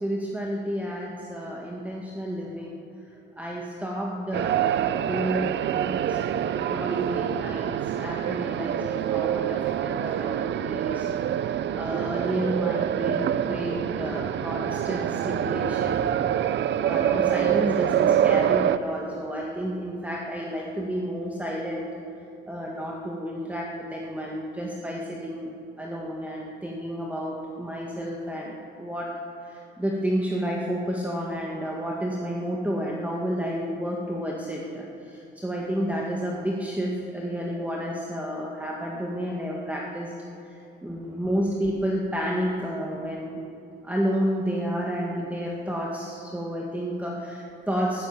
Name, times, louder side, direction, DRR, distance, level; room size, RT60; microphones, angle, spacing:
voice 1, 0.0-2.8 3.4-11.1 11.4-16.2 16.8-21.9 22.5-25.5 25.8-29.1 29.4-40.1 40.5-43.4 43.8-48.1, equal, 5° right, -2 dB, 1.8 m, -31 dB
sound 1, 4.3-18.8, right 10 dB, 65° right, 0.6 m, -26 dB
14.0 x 14.0 x 7.3 m, 2.7 s
cardioid pair, 90°, 20 cm